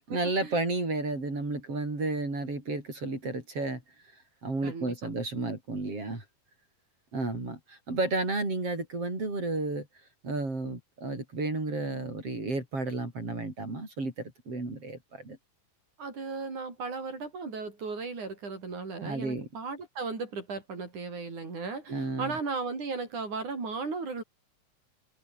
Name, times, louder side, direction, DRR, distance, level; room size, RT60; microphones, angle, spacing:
voice 1, 0.1-3.8 4.4-6.2 7.1-9.9 10.2-15.4 19.0-19.5 21.9-22.4, right 2 dB, 45° right, 7.9 m, -32 dB
voice 2, 4.6-5.1 16.0-24.2, right 4 dB, 65° right, 7.9 m, -36 dB
omnidirectional pair, 3.8 m